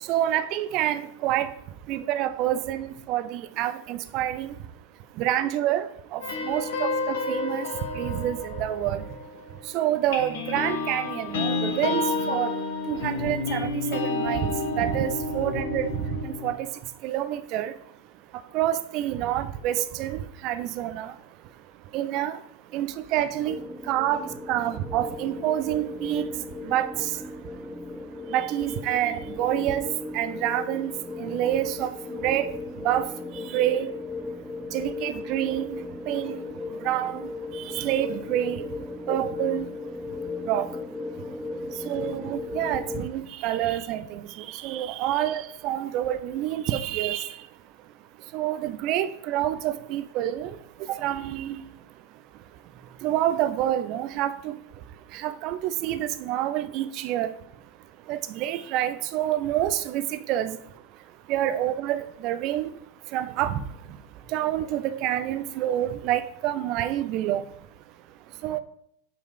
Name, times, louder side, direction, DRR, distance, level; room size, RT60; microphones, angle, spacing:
voice 1, 0.1-1.5 1.9-4.6 5.2-7.7 7.9-9.0 9.7-12.6 12.9-15.9 16.2-16.7 17.0-17.7 18.5-21.1 21.9-22.4 22.7-23.6 23.9-26.3 26.6-27.1 28.3-29.8 30.1-30.9 31.2-31.9 32.2-32.5 32.8-33.1 33.5-33.9 34.7-35.8 36.1-36.4 36.8-37.3 37.7-38.7 39.1-39.7 40.5-40.7 41.8-47.4 48.3-50.5 51.0-51.6 53.0-54.6 55.1-57.3 58.1-60.6 61.3-62.7 63.1-63.6 64.3-67.4 68.4-68.6, right 12 dB, 40° right, 0.6 m, -27 dB
sound 1, 6.2-9.6 10.1-16.5, left 3 dB, 55° left, 1.4 m, -30 dB
sound 2, 23.4-43.1, left 3 dB, ahead, 0.7 m, -36 dB
7.0 x 4.9 x 4.7 m
figure-of-eight pair, 90°, 0 cm